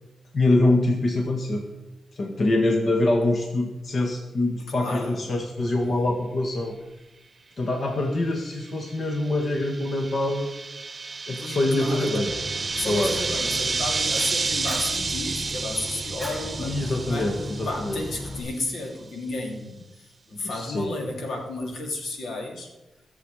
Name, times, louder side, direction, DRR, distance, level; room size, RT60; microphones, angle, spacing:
voice 1, 0.3-1.6 2.1-6.8 7.6-10.5 11.3-12.3 12.8-13.2 16.6-18.0 20.4-20.9, left 2 dB, 55° left, 2 dB, 1.8 m, -24 dB
voice 2, 4.7-5.2 11.4-12.3 12.7-17.3 17.6-22.7, left 2 dB, 80° left, 1 dB, 2.9 m, -33 dB
sound 1, 8.7-18.5, right 4 dB, 40° right, 0.9 m, -31 dB
Fire, 12.3-18.4, left 1 dB, 5° left, 6.1 m, -37 dB
22.0 x 7.3 x 4.9 m, 1.0 s
cardioid pair, 80°, 0 cm